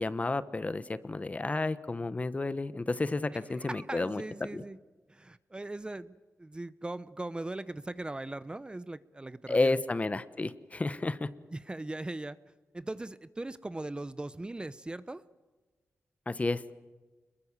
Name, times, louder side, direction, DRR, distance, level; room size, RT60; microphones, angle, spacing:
voice 1, 0.0-4.2 4.5-4.6 9.5-11.3 16.3-16.6, left 2 dB, 30° left, 15 dB, 1.1 m, -31 dB
voice 2, 3.5-4.8 5.1-9.8 11.5-12.4 12.7-15.2, right 2 dB, 20° right, 16 dB, 0.7 m, -39 dB
27.5 x 22.0 x 7.4 m, 1.3 s
cardioid pair, 85°, 5 cm